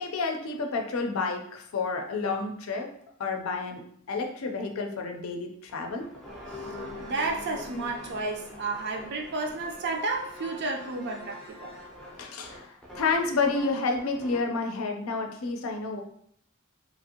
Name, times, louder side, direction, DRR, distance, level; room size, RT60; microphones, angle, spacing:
voice 1, 0.0-2.9 3.2-3.8 4.1-6.1 12.2-16.0, left 4 dB, 75° left, 3 dB, 0.5 m, -30 dB
sound 1, 5.7-14.6, left 1 dB, 5° left, 0.5 m, -44 dB
voice 2, 7.0-11.7, right 3 dB, 50° right, 2 dB, 0.5 m, -32 dB
3.0 x 2.6 x 2.8 m, 0.68 s
head